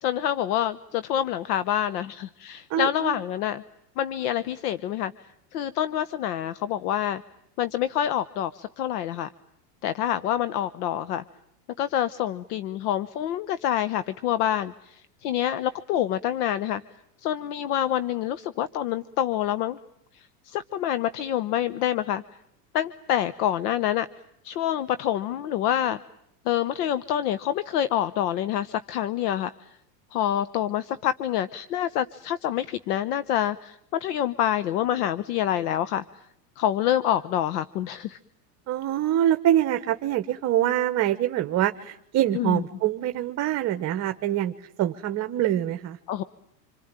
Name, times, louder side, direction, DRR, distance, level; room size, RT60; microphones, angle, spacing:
voice 1, 0.0-3.6 4.0-5.1 5.5-7.2 7.6-9.3 9.8-11.2 11.8-16.8 17.2-19.8 20.5-22.2 22.7-24.1 24.4-26.0 26.5-29.5 30.1-36.0 36.6-38.2 42.3-42.6 46.1-46.2, left 11 dB, 70° left, 15 dB, 1.1 m, -27 dB
voice 2, 2.7-3.2 38.7-46.0, right 12 dB, 35° right, 9 dB, 1.1 m, -25 dB
27.0 x 24.0 x 9.0 m, 0.76 s
supercardioid pair, 130°, 48 cm